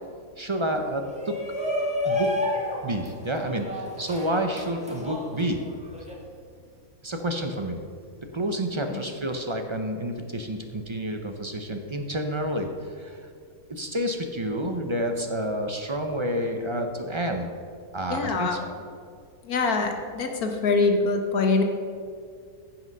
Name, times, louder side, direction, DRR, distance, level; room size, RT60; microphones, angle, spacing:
voice 1, 0.4-1.3 2.0-2.3 2.8-5.6 7.0-7.8 8.3-13.2 13.7-17.5 17.9-18.7, right 1 dB, 40° right, 4 dB, 0.4 m, -29 dB
Shout, 1.0-6.1, left 1 dB, 5° right, 1.6 m, -30 dB
voice 2, 18.1-18.6 19.4-21.6, left 3 dB, 70° left, 4 dB, 1.6 m, -24 dB
15.0 x 5.9 x 5.4 m, 2.2 s
omnidirectional pair, 1.6 m